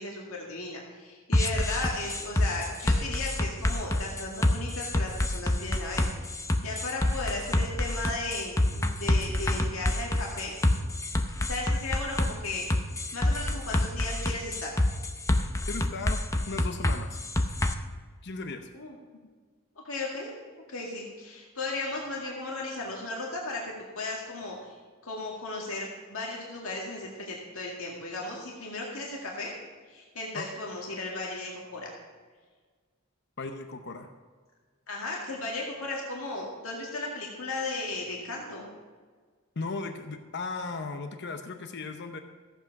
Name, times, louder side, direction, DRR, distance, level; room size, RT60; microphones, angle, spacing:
voice 1, 0.0-6.4 6.6-10.5 11.5-12.8 13.1-14.8 18.7-19.0 19.8-20.3 20.7-24.8 25.0-29.5 29.9-32.0 34.9-38.7, left 2 dB, 70° left, -2 dB, 2.0 m, -35 dB
sound 1, 1.3-17.7, left 1 dB, 15° left, 0.7 m, -27 dB
voice 2, 15.7-16.2 16.5-17.2 18.2-18.7 30.3-30.5 33.4-34.1 39.6-42.2, left 3 dB, 55° left, 7 dB, 0.8 m, -36 dB
15.0 x 8.1 x 5.9 m, 1.5 s
head